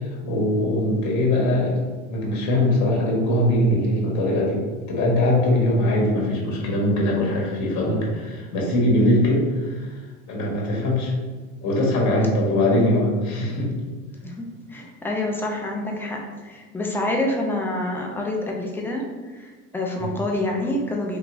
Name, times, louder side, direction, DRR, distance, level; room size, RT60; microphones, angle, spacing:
voice 1, 0.2-1.8 2.1-4.6 4.9-9.9 10.3-11.1 11.6-13.7 20.0-20.1, left 1 dB, 40° left, -2 dB, 1.2 m, -21 dB
voice 2, 14.2-19.1 19.3-21.2, left 1 dB, 5° left, 0 dB, 0.3 m, -27 dB
3.4 x 2.9 x 2.5 m, 1.4 s
hypercardioid pair, 95°, 42 cm